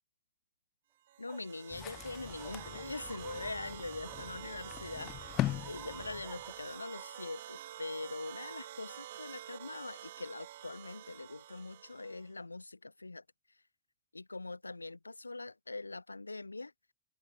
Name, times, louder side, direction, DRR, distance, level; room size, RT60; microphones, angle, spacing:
sound 1, 1.1-12.3, right 13 dB, 60° right, 1.6 m, -48 dB
voice 1, 1.2-13.2 14.1-16.7, left 3 dB, 80° left, 0.9 m, -43 dB
sound 2, 1.3-1.5 1.8-2.0 2.4-3.6 4.0-4.2 5.4-7.1, right 7 dB, 20° right, 3.8 m, -55 dB
sound 3, 1.7-6.7, left 14 dB, 35° left, 0.4 m, -41 dB
open air
figure-of-eight pair, 90°, 0 cm